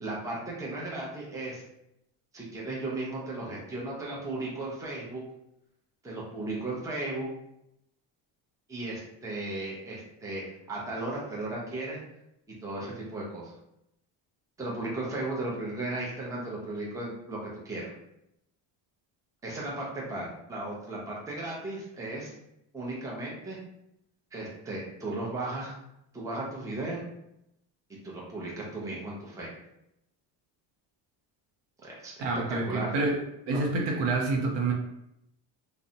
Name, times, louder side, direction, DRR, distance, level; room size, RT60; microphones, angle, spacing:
voice 1, 0.0-1.6 2.3-5.2 6.0-7.3 8.7-10.4 10.7-12.0 12.6-13.5 14.6-17.9 19.4-22.4 22.7-23.6 24.3-25.8 26.1-27.0 28.0-29.5 31.8-32.1 32.6-32.9 33.5-33.6, right 2 dB, 5° right, -4 dB, 0.6 m, -35 dB
voice 2, 32.2-33.2 33.5-34.7, right 3 dB, 60° right, 0 dB, 0.7 m, -27 dB
2.5 x 2.1 x 2.6 m, 0.82 s
cardioid pair, 105°, 49 cm